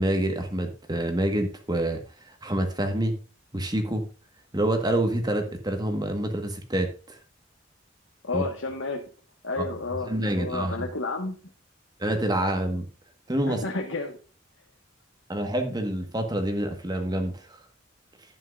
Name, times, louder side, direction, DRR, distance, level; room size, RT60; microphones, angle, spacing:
voice 1, 0.0-3.2 3.5-4.1 4.5-7.2 8.3-8.4 9.6-9.7 10.1-10.7 12.0-12.8 13.3-13.6 15.3-17.6, right 1 dB, 20° right, 5 dB, 1.6 m, -27 dB
voice 2, 8.2-9.0 9.4-11.4 13.5-14.2, left 3 dB, 80° left, 1 dB, 1.6 m, -31 dB
11.5 x 9.0 x 2.6 m, 0.36 s
head